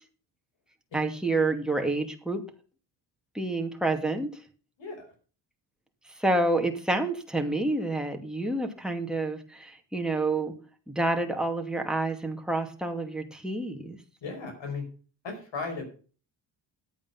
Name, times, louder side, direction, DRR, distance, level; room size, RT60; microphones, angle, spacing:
voice 1, 0.9-2.4 3.3-4.3 6.2-10.5 10.9-14.0, right 2 dB, ahead, 3 dB, 2.5 m, -28 dB
voice 2, 14.2-14.8 15.2-15.8, left 4 dB, 65° left, 4 dB, 5.2 m, -35 dB
11.5 x 8.6 x 5.6 m, 0.39 s
cardioid pair, 80°, 48 cm